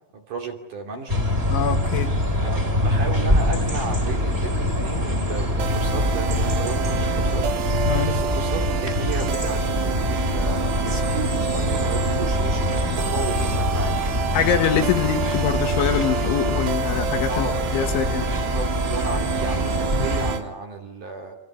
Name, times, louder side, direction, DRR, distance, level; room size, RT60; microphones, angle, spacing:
voice 1, 0.1-1.3 2.4-7.5 8.0-14.0 17.3-17.9 18.5-21.4, right 4 dB, 45° right, 3 dB, 3.6 m, -33 dB
sound 1, 1.1-20.4, left 1 dB, 15° right, 3.5 m, -24 dB
voice 2, 1.5-2.1 7.9-8.1 14.3-18.2, left 8 dB, 70° left, 5 dB, 4.1 m, -24 dB
sound 2, 5.6-20.4, right 8 dB, 65° right, 3.4 m, -29 dB
29.0 x 25.5 x 7.4 m, 0.78 s
omnidirectional pair, 5.9 m